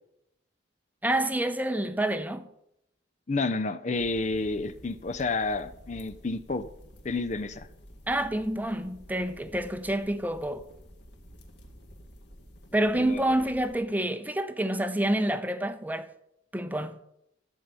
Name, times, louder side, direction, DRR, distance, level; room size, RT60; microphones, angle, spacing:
voice 1, 1.0-2.5 8.1-10.6 12.7-16.1 16.5-17.1, right 1 dB, 10° right, 0.7 m, -28 dB
voice 2, 3.3-6.7 7.0-7.7 13.0-13.3, left 3 dB, 35° left, 0.5 m, -30 dB
sound 1, 3.9-13.8, equal, 60° left, 2.2 m, -51 dB
14.0 x 5.5 x 8.9 m
head